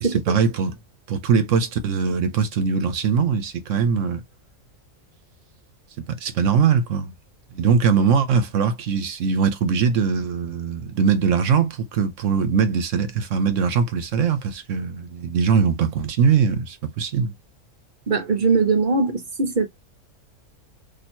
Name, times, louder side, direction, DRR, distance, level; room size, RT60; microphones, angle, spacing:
voice 1, 0.0-0.7 1.1-4.2 6.0-7.1 7.5-17.3, right 6 dB, 70° right, 1.1 m, -21 dB
voice 2, 18.1-19.7, right 4 dB, 40° right, 0.9 m, -20 dB
2.9 x 2.7 x 4.3 m
omnidirectional pair, 1.4 m